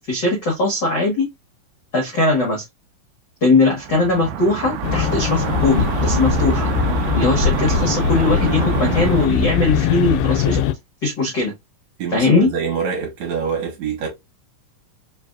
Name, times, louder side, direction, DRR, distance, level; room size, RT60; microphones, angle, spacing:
voice 1, 0.1-1.2 1.9-2.6 3.4-6.7 7.1-10.6 11.0-11.5 12.1-12.5, left 3 dB, 65° left, 1.0 m, -19 dB
sound 1, 3.6-9.3, right 9 dB, 85° right, 1.7 m, -26 dB
sound 2, 4.8-10.7, left 7 dB, 85° left, 2.2 m, -21 dB
voice 2, 12.0-14.1, right 6 dB, 60° right, 2.3 m, -25 dB
5.1 x 2.8 x 2.3 m
omnidirectional pair, 3.9 m